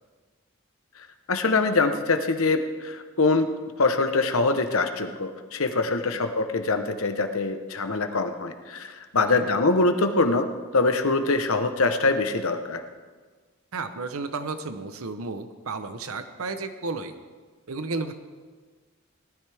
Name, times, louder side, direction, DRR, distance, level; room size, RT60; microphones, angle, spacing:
voice 1, 1.3-3.5 3.8-10.5 10.7-12.8, left 3 dB, 80° left, 7 dB, 1.1 m, -24 dB
voice 2, 13.7-17.1 17.7-18.1, right 3 dB, 90° right, 9 dB, 0.9 m, -33 dB
19.0 x 13.0 x 3.5 m, 1.4 s
head